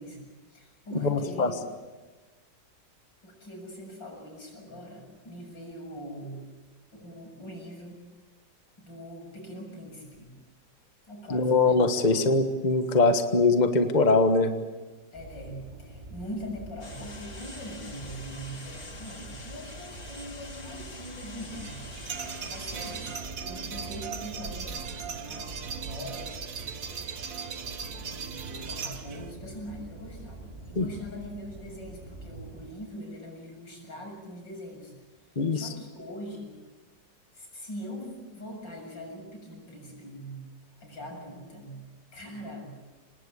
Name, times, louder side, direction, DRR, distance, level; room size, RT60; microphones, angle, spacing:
voice 1, 0.0-1.6 3.2-6.4 6.9-8.0 8.8-10.3 11.1-11.8 15.1-21.8 22.4-26.4 28.0-34.9 35.5-36.6 37.3-40.4 40.8-41.8 42.1-42.6, equal, 85° left, 1 dB, 7.9 m, -42 dB
voice 2, 1.0-1.5 11.3-14.5 30.7-30.9 35.4-35.7, left 3 dB, 25° left, 7 dB, 1.4 m, -22 dB
sound 1, 15.1-32.6, right 2 dB, 20° right, 5.6 m, -45 dB
sound 2, 16.8-23.2, left 2 dB, 50° left, 3.2 m, -45 dB
sound 3, 21.5-29.3, right 6 dB, 50° right, 1.6 m, -38 dB
26.0 x 20.0 x 8.3 m, 1.3 s
omnidirectional pair, 2.0 m